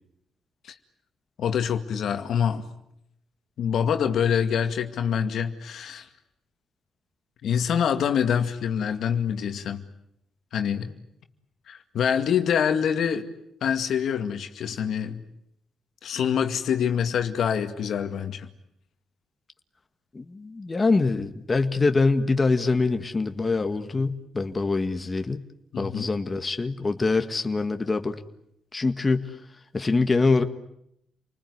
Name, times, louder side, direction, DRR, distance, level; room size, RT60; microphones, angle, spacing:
voice 1, 1.4-2.7 3.6-6.1 7.4-9.8 10.5-10.9 11.7-13.2 13.6-15.2 16.0-18.5 25.7-26.1, left 8 dB, 65° left, 7 dB, 2.2 m, -25 dB
voice 2, 20.1-25.4 25.8-28.2 28.7-29.3 29.7-30.4, left 3 dB, 25° left, 7 dB, 1.7 m, -24 dB
30.0 x 20.5 x 9.8 m, 0.78 s
cardioid pair, 90°, 0 cm